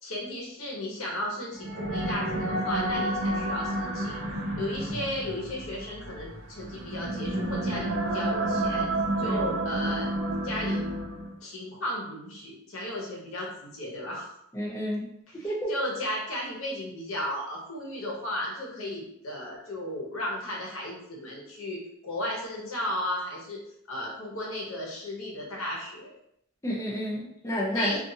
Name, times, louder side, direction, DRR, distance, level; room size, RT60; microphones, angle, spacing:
voice 1, 0.0-4.2 4.6-8.9 9.2-10.1 10.4-10.9 11.4-14.3 15.3-23.6 23.9-26.1 27.7-28.0, left 1 dB, 85° left, -3 dB, 0.9 m, -35 dB
sound 1, 1.5-11.4, right 1 dB, 85° right, 0.6 m, -30 dB
voice 2, 14.5-15.7 26.6-27.9, equal, 15° left, -5 dB, 0.5 m, -30 dB
2.5 x 2.4 x 2.7 m, 0.75 s
head